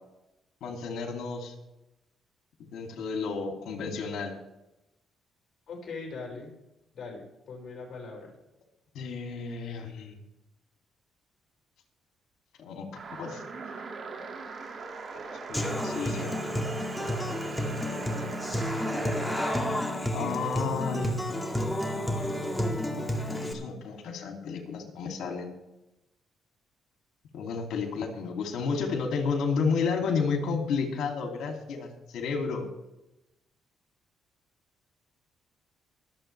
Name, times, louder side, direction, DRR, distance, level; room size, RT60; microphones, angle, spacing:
voice 1, 0.6-1.5 2.7-4.3 8.9-10.2 12.6-13.4 15.1-16.3 20.1-21.1 22.9-23.0 23.5-25.5 27.3-32.7, left 5 dB, 75° left, 3 dB, 2.8 m, -32 dB
voice 2, 5.7-6.5 6.9-8.3, left 4 dB, 50° left, -1 dB, 5.6 m, -40 dB
sound 1, 13.0-19.7, right 4 dB, 50° right, 2.3 m, -39 dB
Human voice / Acoustic guitar, 15.5-23.5, left 1 dB, 5° left, 2.1 m, -31 dB
23.5 x 8.0 x 3.4 m, 0.94 s
cardioid pair, 90°, 0 cm